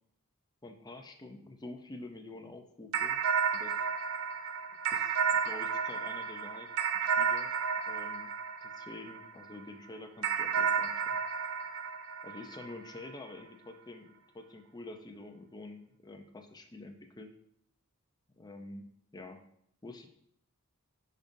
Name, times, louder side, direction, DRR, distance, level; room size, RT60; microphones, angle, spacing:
voice 1, 0.6-3.2 3.5-3.8 4.9-6.7 6.9-7.5 7.9-8.3 8.6-11.2 12.2-17.3 18.3-19.4 19.8-20.1, left 2 dB, 20° left, 5 dB, 0.6 m, -47 dB
sound 1, 2.9-9.5 10.2-13.0, right 6 dB, 70° right, 0.6 m, -32 dB
10.5 x 5.3 x 2.6 m, 0.73 s
head